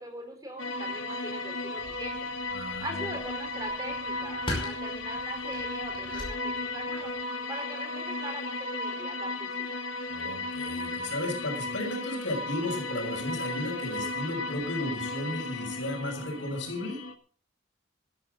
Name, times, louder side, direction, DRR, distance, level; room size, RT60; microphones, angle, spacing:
voice 1, 0.0-2.3 2.8-7.1 7.5-9.5, right 1 dB, 20° right, 4 dB, 4.2 m, -41 dB
sound 1, 0.6-17.1, left 2 dB, 85° left, 1.6 m, -35 dB
sound 2, 1.8-7.1, left 1 dB, 25° left, 5.5 m, -41 dB
voice 2, 2.5-3.1 10.1-17.0, left 1 dB, 70° left, 3 dB, 6.2 m, -34 dB
15.5 x 13.5 x 4.0 m, 0.43 s
head